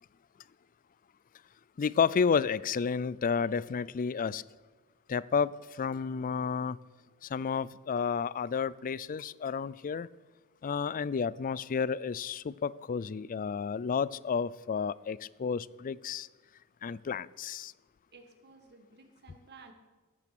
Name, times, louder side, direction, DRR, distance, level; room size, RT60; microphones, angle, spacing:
voice 1, 1.8-4.4 5.1-5.5 5.8-6.8 7.3-10.1 10.6-16.3 16.8-17.7, left 6 dB, 40° left, 21 dB, 0.4 m, -31 dB
voice 2, 18.1-19.7, right 4 dB, 50° right, 6 dB, 1.8 m, -55 dB
17.5 x 9.1 x 6.0 m, 1.3 s
head